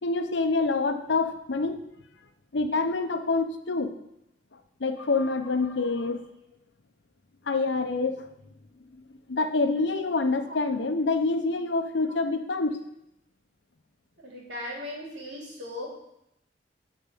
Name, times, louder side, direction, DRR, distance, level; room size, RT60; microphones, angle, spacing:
voice 1, 0.0-1.8 2.5-3.9 4.8-6.2 7.5-8.3 9.3-12.8, left 3 dB, 80° left, 9 dB, 0.8 m, -26 dB
voice 2, 5.7-6.4 10.4-10.6 12.0-12.1 14.2-15.9, left 1 dB, 90° right, -2 dB, 2.9 m, -39 dB
9.3 x 4.7 x 7.6 m, 0.81 s
head